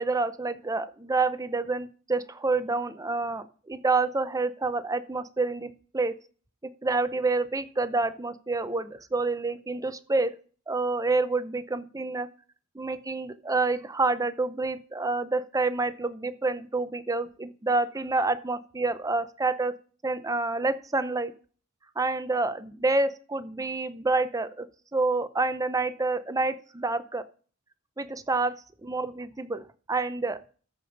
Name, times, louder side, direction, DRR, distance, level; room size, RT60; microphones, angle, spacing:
voice 1, 0.0-6.1 6.6-10.3 10.7-12.3 12.7-19.7 20.0-21.3 22.0-24.7 24.9-27.2 28.0-28.5 28.8-30.5, right 3 dB, 15° right, 12 dB, 0.6 m, -28 dB
13.5 x 5.2 x 5.3 m, 0.41 s
head